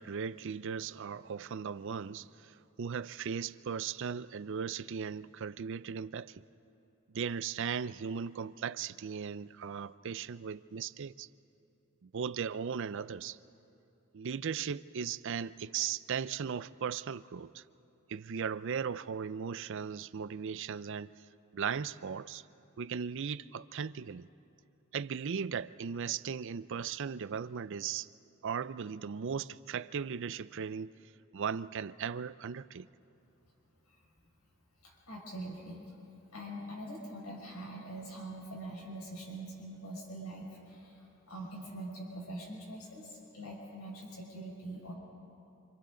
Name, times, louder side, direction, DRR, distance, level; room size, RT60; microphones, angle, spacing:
voice 1, 0.0-6.4 7.1-11.3 12.0-13.4 14.1-17.6 18.1-21.1 21.5-22.4 22.8-24.3 24.9-28.1 28.4-30.9 31.3-32.9, right 6 dB, 55° right, 0.4 m, -37 dB
voice 2, 34.8-35.8 36.3-44.9, right 1 dB, 85° left, 5.8 m, -44 dB
27.5 x 26.5 x 3.8 m
head